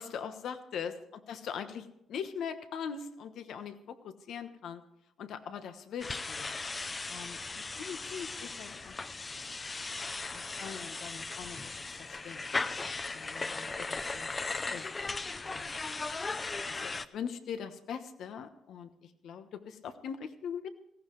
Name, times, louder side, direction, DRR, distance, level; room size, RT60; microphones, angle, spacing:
voice 1, 0.0-4.8 5.2-6.6 7.1-9.0 10.2-11.7 12.0-12.5 13.1-15.7 16.7-20.7, left 7 dB, 75° left, 9 dB, 1.2 m, -42 dB
sound 1, 6.0-17.1, left 3 dB, 30° left, 0.6 m, -37 dB
18.0 x 15.0 x 3.2 m, 0.78 s
cardioid pair, 90°, 0 cm